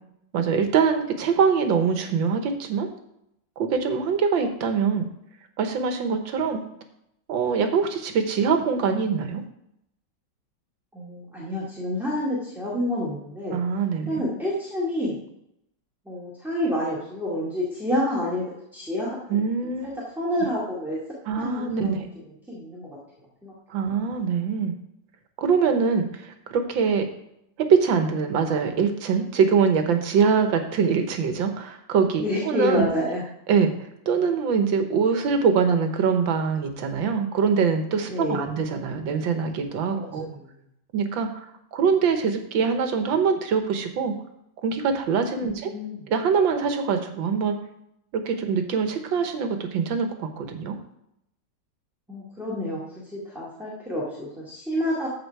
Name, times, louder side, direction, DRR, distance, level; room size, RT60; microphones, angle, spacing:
voice 1, 0.3-2.9 3.6-5.1 5.6-6.6 7.3-9.4 13.5-14.2 19.3-20.0 21.3-22.0 23.7-24.7 25.4-27.1 27.6-32.8 33.5-33.7 34.1-40.3 40.9-41.5 41.7-44.2 44.6-45.7 46.1-47.6 48.1-50.8, right 6 dB, 85° right, 6 dB, 1.8 m, -23 dB
voice 2, 10.9-13.6 14.1-15.2 16.1-19.7 20.1-21.0 21.4-23.0 23.4-23.5 32.2-33.2 38.1-38.5 39.9-40.6 45.4-46.0 52.1-55.1, left 1 dB, ahead, -7 dB, 2.0 m, -29 dB
13.5 x 4.9 x 4.7 m, 0.79 s
omnidirectional pair, 2.0 m